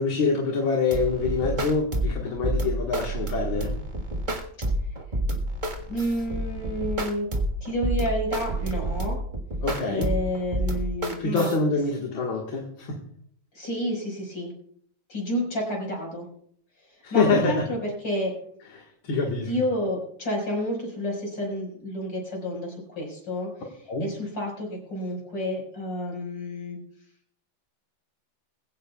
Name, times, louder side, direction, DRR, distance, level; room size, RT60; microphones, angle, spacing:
voice 1, 0.0-3.8 9.6-10.2 11.2-13.0 17.0-17.7 18.7-19.5 23.9-24.1, left 4 dB, 80° left, 0 dB, 2.5 m, -25 dB
sound 1, 0.9-11.6, right 1 dB, 25° right, 1.6 m, -29 dB
voice 2, 5.9-7.3 7.6-9.2 9.9-11.5 13.5-14.5 15.1-16.3 17.1-18.4 19.5-23.5 24.0-26.8, equal, 65° left, 0 dB, 5.8 m, -30 dB
21.0 x 16.0 x 2.3 m, 0.64 s
omnidirectional pair, 2.2 m